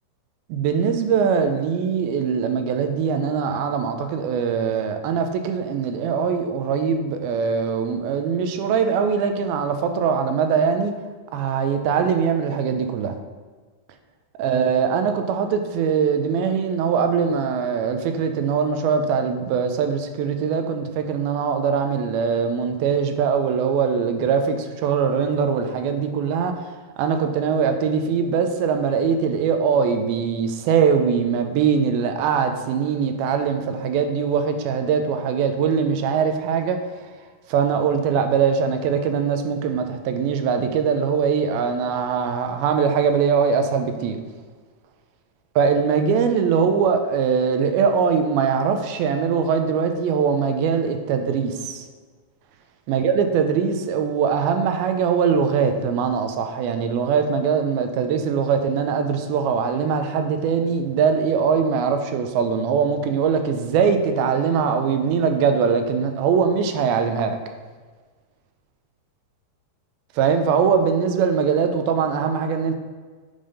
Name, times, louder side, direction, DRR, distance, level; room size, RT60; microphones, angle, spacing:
voice 1, 0.5-10.9 11.3-13.2 14.4-26.5 27.0-36.8 37.5-44.2 45.6-51.9 52.9-67.4 70.2-72.8, right 6 dB, 85° right, 2.4 m, -22 dB
8.9 x 3.5 x 5.3 m
omnidirectional pair, 4.4 m